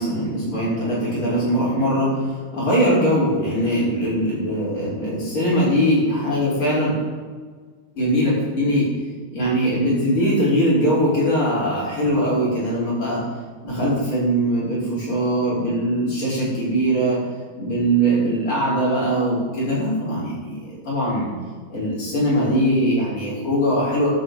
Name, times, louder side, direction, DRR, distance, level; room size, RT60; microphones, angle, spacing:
voice 1, 0.0-7.0 8.0-8.9 9.3-13.2 13.6-17.2 17.6-21.3 21.7-24.1, equal, 80° left, -12 dB, 6.2 m, -21 dB
15.5 x 11.0 x 5.2 m, 1.5 s
omnidirectional pair, 2.3 m